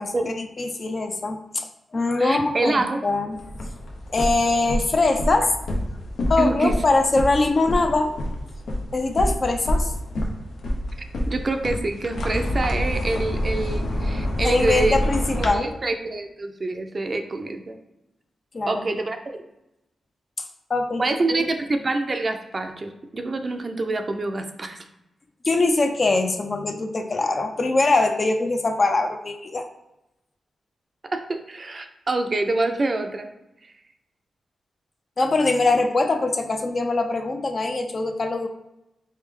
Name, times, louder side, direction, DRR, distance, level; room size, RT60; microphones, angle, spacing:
voice 1, 0.0-1.7 1.9-3.4 4.1-5.5 6.3-8.2 8.9-9.9 14.4-15.7 18.5-18.8 20.7-21.0 21.4-21.5 25.4-29.7 35.2-38.5, left 3 dB, 40° left, 5 dB, 0.5 m, -22 dB
voice 2, 2.2-3.0 6.4-6.7 11.3-15.0 15.4-17.8 18.7-19.4 21.0-24.8 31.1-33.3, right 2 dB, 40° right, 5 dB, 0.5 m, -26 dB
sound 1, 3.3-15.5, equal, 80° left, 0.7 m, -27 dB
3.3 x 3.2 x 3.6 m, 0.89 s
cardioid pair, 85°, 0 cm